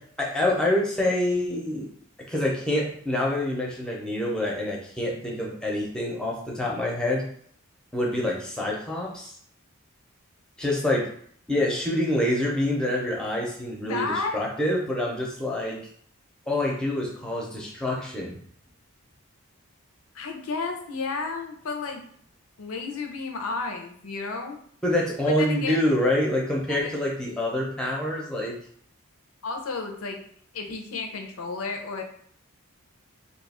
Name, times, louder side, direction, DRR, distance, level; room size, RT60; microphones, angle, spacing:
voice 1, 0.2-1.9 2.3-7.2 7.9-9.3 10.6-11.1 11.5-15.8 16.5-18.4 24.8-28.6, left 1 dB, 5° left, -3 dB, 0.6 m, -26 dB
voice 2, 13.8-14.4 20.1-22.1 22.6-24.6 25.2-25.8 26.7-26.9 27.2-27.4 29.4-30.2 30.5-32.0, left 4 dB, 75° left, 4 dB, 0.6 m, -32 dB
2.7 x 2.4 x 4.1 m, 0.62 s
head